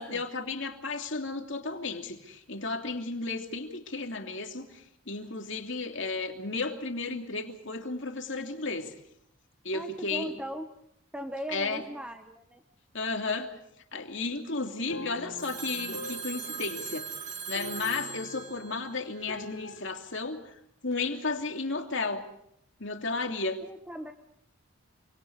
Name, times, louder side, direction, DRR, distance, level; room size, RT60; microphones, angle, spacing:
voice 1, 0.0-8.9 9.6-10.3 11.5-11.8 12.9-13.5 13.9-17.1 17.5-20.5 20.8-22.2 22.8-23.6, left 3 dB, 55° left, 4 dB, 3.0 m, -33 dB
voice 2, 9.7-10.8 11.1-12.6 23.6-24.1, equal, 5° right, 5 dB, 1.2 m, -39 dB
sound 1, 14.9-19.9, left 2 dB, 75° left, 2.1 m, -45 dB
Telephone, 15.4-19.6, right 6 dB, 35° right, 1.6 m, -40 dB
27.5 x 25.5 x 4.9 m, 0.73 s
head